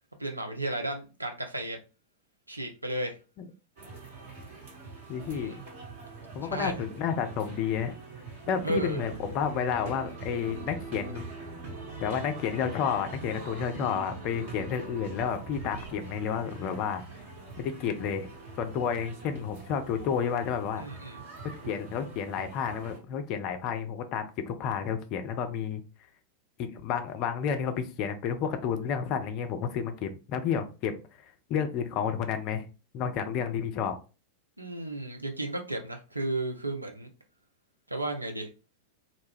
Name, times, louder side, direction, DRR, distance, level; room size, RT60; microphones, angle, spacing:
voice 1, 0.2-1.8 2.5-3.2 5.3-5.6 6.5-6.8 8.6-9.1 20.8-21.2 34.6-37.1 37.9-38.5, right 2 dB, 85° right, 4 dB, 0.5 m, -33 dB
sound 1, 3.8-23.0, right 4 dB, 50° right, 1.3 m, -43 dB
voice 2, 5.1-5.5 6.3-8.0 8.5-11.3 12.0-17.0 17.6-20.9 21.7-25.8 26.6-30.9 31.5-32.6 32.9-34.0, left 7 dB, 40° left, 7 dB, 0.5 m, -31 dB
2.4 x 2.2 x 3.3 m, 0.32 s
figure-of-eight pair, 90°, 0 cm